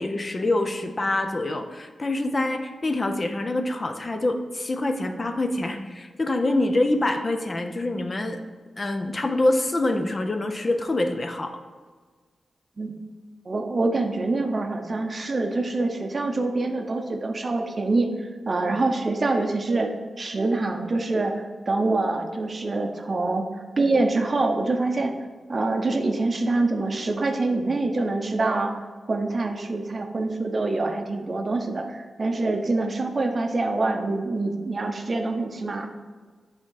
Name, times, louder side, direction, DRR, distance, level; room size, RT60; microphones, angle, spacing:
voice 1, 0.0-8.4 8.8-11.6, left 2 dB, 30° left, 6 dB, 0.5 m, -25 dB
voice 2, 13.4-23.5 23.8-25.1 25.5-35.9, right 2 dB, 35° right, 5 dB, 0.6 m, -25 dB
8.7 x 3.6 x 3.9 m, 1.5 s
wide cardioid pair, 115°, 0 cm